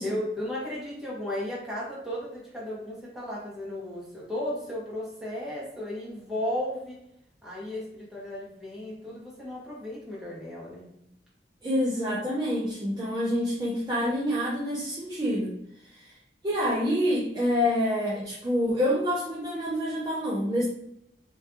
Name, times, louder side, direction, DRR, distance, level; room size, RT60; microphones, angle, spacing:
voice 1, 0.0-7.0 7.4-10.9, left 1 dB, ahead, -7 dB, 0.7 m, -35 dB
voice 2, 11.6-15.6 15.8-16.2 16.4-20.7, equal, 25° right, -5 dB, 0.3 m, -27 dB
2.5 x 2.3 x 2.4 m, 0.76 s
head